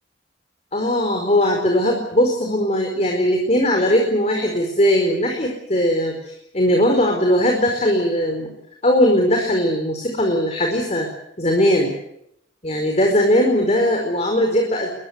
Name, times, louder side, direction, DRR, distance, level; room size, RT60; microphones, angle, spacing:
voice 1, 0.7-8.5 8.8-11.1 11.4-11.9 12.6-14.9, equal, 35° left, 2 dB, 4.7 m, -19 dB
23.5 x 22.0 x 8.2 m, 0.76 s
head